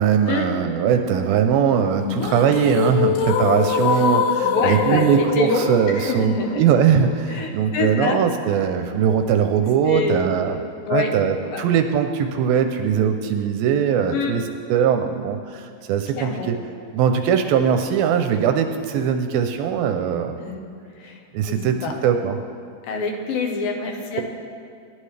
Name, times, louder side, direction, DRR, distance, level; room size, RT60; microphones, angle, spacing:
voice 1, 0.0-10.6 10.9-14.4 14.7-16.6 16.9-20.4 21.3-22.4, right 8 dB, 80° right, 6 dB, 2.2 m, -20 dB
sound 1, 2.0-8.0, left 7 dB, 85° left, 2.9 m, -24 dB
voice 2, 4.4-6.6 7.3-8.2 8.8-8.9 9.9-11.1 11.4-11.7 14.1-14.4 16.1-16.5 20.4-20.6 21.0-22.0 22.9-24.2, left 4 dB, 70° left, 2 dB, 2.7 m, -26 dB
24.5 x 11.5 x 3.3 m, 2.3 s
omnidirectional pair, 4.5 m